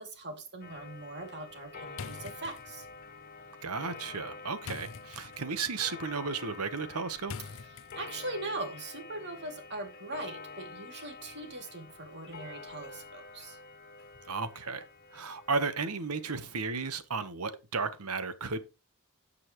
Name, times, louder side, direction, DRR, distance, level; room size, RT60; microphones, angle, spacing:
voice 1, 0.0-2.9 7.4-13.6, right 2 dB, 50° right, 2.7 m, -41 dB
Clock, 0.6-16.7, left 4 dB, 45° left, 1.6 m, -48 dB
sound 1, 1.9-8.4, left 5 dB, 65° left, 0.7 m, -47 dB
voice 2, 3.6-7.3 14.3-14.8 15.1-18.6, right 4 dB, 85° right, 1.2 m, -34 dB
16.0 x 5.6 x 3.1 m
head